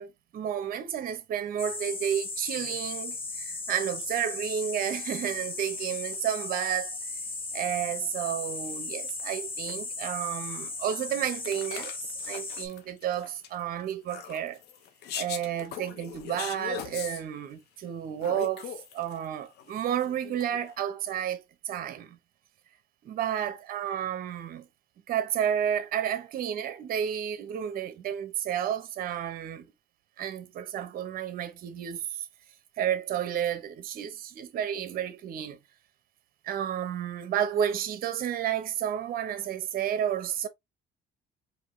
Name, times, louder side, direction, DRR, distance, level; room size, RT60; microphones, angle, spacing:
voice 1, 0.0-7.0 7.5-11.9 12.3-14.6 15.1-22.2 23.0-24.7 25.1-29.7 30.2-32.3 32.8-35.6 36.4-40.5, right 10 dB, 60° right, 0.9 m, -31 dB
sound 1, 1.6-12.7, left 3 dB, 30° left, 1.3 m, -36 dB
sound 2, 6.1-6.2 6.6-6.9 7.7-7.8 8.3-8.4 8.6-8.8 9.1-9.7 10.0-10.2 10.5-10.6 11.0-17.2 18.2-19.3 19.5-20.7, left 9 dB, 75° left, 0.9 m, -41 dB
4.8 x 2.7 x 3.1 m
cardioid pair, 110°, 17 cm